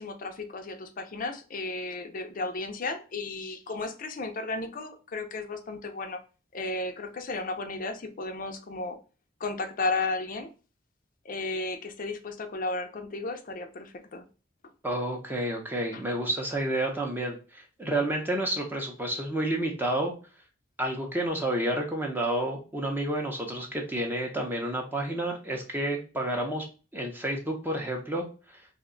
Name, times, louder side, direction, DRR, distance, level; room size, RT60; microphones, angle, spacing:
voice 1, 0.0-6.2 6.5-9.0 9.4-10.5 11.2-14.2 15.9-16.0, left 3 dB, 45° left, 6 dB, 0.5 m, -34 dB
voice 2, 14.8-20.1 20.8-26.6 26.9-28.3, right 1 dB, 10° right, 1 dB, 0.6 m, -30 dB
2.6 x 2.2 x 3.7 m, 0.34 s
head